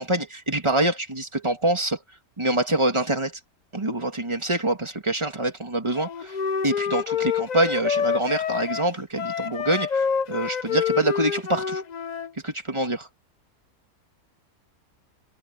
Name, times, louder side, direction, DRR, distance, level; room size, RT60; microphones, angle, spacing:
voice 1, 0.0-2.0 2.4-3.3 3.7-6.4 6.6-11.8 12.4-13.1, right 1 dB, 20° right, 2.1 m, -25 dB
Wind instrument woodwind instrument, 5.9-12.3, left 7 dB, 55° left, 0.4 m, -27 dB
omnidirectional pair, 1.6 m